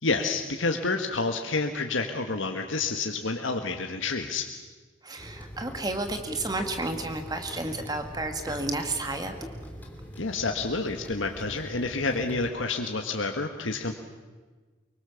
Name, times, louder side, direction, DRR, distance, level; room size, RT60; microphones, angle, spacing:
voice 1, 0.0-4.5 10.2-13.9, left 3 dB, 75° left, 4 dB, 1.6 m, -29 dB
voice 2, 5.0-9.3, right 2 dB, 20° right, 6 dB, 2.1 m, -31 dB
sound 1, 5.2-12.5, equal, 10° left, 2.8 m, -42 dB
24.5 x 23.5 x 7.2 m, 1.3 s
head